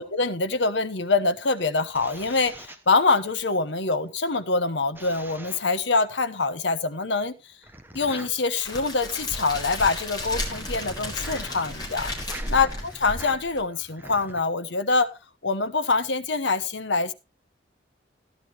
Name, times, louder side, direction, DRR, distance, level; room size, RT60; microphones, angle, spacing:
voice 1, 0.0-7.4 7.9-12.1 12.5-15.1 15.4-17.1, left 3 dB, 70° left, 1.1 m, -25 dB
sound 1, 1.6-3.5 4.9-5.9 7.6-14.4, right 1 dB, 10° right, 1.0 m, -44 dB
Crackle, 8.6-13.6, left 1 dB, 20° left, 4.0 m, -33 dB
14.0 x 11.0 x 3.0 m
head